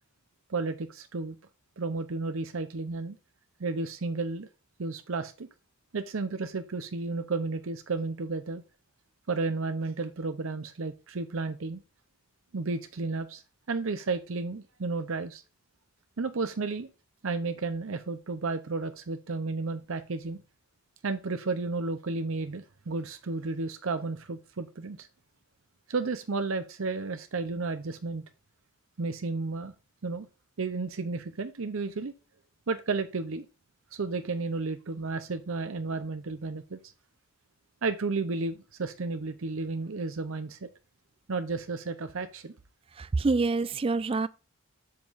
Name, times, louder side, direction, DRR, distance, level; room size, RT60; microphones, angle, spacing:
voice 1, 0.5-1.3 1.8-3.2 3.6-4.5 4.8-5.5 5.9-8.6 9.3-11.8 12.5-13.4 13.7-15.4 16.2-16.9 17.2-20.4 21.0-25.1 25.9-28.2 29.0-29.7 30.0-30.3 30.6-32.1 32.7-33.5 33.9-36.8 37.8-40.7 41.3-42.5, right 3 dB, 65° right, 0.7 m, -32 dB
voice 2, 43.0-44.3, right 3 dB, 25° right, 0.3 m, -26 dB
7.7 x 7.4 x 2.5 m
head